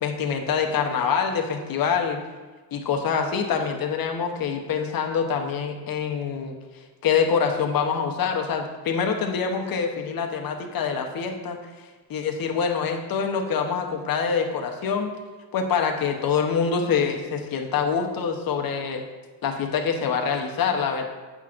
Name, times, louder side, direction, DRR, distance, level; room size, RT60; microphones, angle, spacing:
voice 1, 0.0-2.2 2.7-6.6 7.0-11.6 12.1-15.1 15.5-19.0 19.4-21.0, left 6 dB, 50° left, 3 dB, 0.9 m, -25 dB
8.0 x 6.0 x 2.5 m, 1.3 s
cardioid pair, 90°, 44 cm